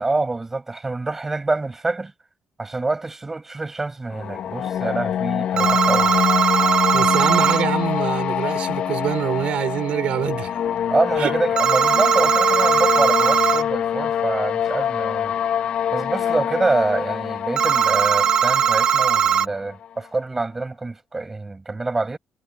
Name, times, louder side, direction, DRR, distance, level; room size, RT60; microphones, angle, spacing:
voice 1, 0.0-2.1 2.6-6.2 10.9-15.3 15.9-22.2, right 3 dB, 15° right, 7.8 m, -26 dB
sound 1, 4.1-19.9, left 9 dB, 60° left, 3.0 m, -25 dB
sound 2, 5.6-7.6 11.6-13.6 17.6-19.5, right 8 dB, 40° right, 1.1 m, -19 dB
voice 2, 6.9-10.5 11.2-11.3, right 11 dB, 60° right, 5.8 m, -25 dB
cardioid pair, 165°, 2 cm